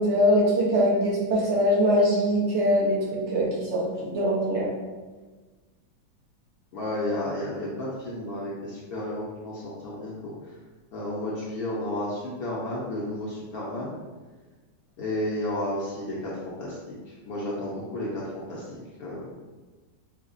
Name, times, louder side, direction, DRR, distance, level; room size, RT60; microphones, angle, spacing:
voice 1, 0.0-4.7, equal, 55° right, -5 dB, 0.8 m, -22 dB
voice 2, 6.7-10.3 10.9-14.0 15.0-19.3, left 1 dB, 65° left, -6 dB, 1.0 m, -32 dB
5.5 x 2.1 x 2.5 m, 1.3 s
omnidirectional pair, 2.0 m